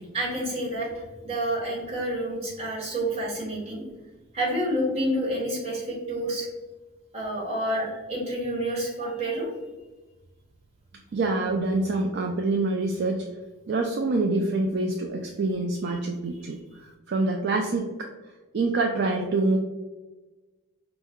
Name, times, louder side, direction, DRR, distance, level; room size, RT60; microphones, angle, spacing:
voice 1, 0.1-3.8 4.3-6.5 7.1-9.5, right 1 dB, 25° right, -4 dB, 1.1 m, -29 dB
voice 2, 11.1-13.2 13.7-18.1 18.5-19.6, right 2 dB, 45° right, 1 dB, 0.3 m, -26 dB
5.4 x 2.0 x 3.5 m, 1.2 s
head